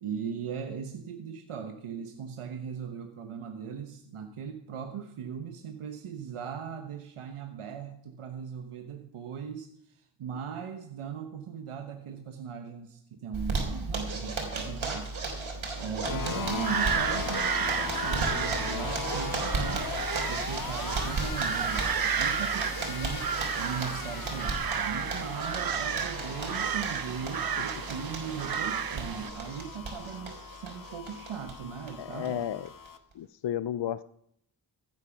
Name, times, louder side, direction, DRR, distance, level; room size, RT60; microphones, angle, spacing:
voice 1, 0.0-15.2 15.8-20.0 20.3-32.5, right 7 dB, 90° right, 5 dB, 1.2 m, -38 dB
Zipper (clothing), 13.3-31.5 31.8-31.9 32.2-32.3 32.7-33.1, right 3 dB, 65° right, 3.9 m, -35 dB
sound 1, 16.0-33.0, left 6 dB, 40° left, 1.1 m, -40 dB
voice 2, 16.3-16.6 32.0-32.7 33.2-34.0, left 10 dB, 60° left, 15 dB, 0.6 m, -33 dB
sound 2, 16.4-29.3, right 8 dB, 45° right, 0.8 m, -33 dB
15.0 x 9.2 x 5.9 m, 0.71 s
cardioid pair, 75°, 49 cm